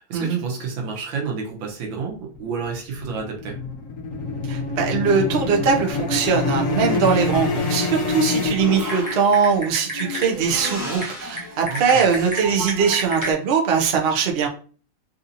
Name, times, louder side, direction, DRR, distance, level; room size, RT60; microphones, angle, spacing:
voice 1, 0.0-3.6 11.7-12.1, right 5 dB, 90° right, 1 dB, 1.6 m, -30 dB
sound 1, 2.1-9.3, left 3 dB, 50° left, 1.3 m, -26 dB
voice 2, 4.5-14.5, right 6 dB, 65° right, 1 dB, 0.6 m, -21 dB
Typing, 8.6-13.3, equal, 15° right, 0.8 m, -31 dB
4.1 x 2.7 x 2.6 m, 0.40 s
omnidirectional pair, 2.0 m